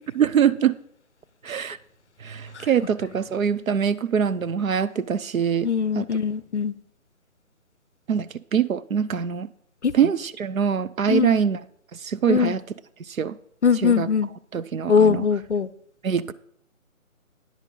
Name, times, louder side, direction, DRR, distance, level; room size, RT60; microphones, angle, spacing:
voice 1, 0.1-0.7 1.4-1.8 2.2-5.7 6.0-6.1 8.1-9.5 9.9-11.6 12.0-12.6 13.2-13.4 13.8-14.1 14.5-15.2 16.0-16.3, right 8 dB, 75° right, 0.7 m, -23 dB
voice 2, 5.6-6.7 9.8-9.9 11.1-11.4 12.3-12.5 13.6-14.3 14.9-15.7, left 6 dB, 55° left, 0.5 m, -21 dB
9.7 x 8.3 x 3.9 m
figure-of-eight pair, 175°, 42 cm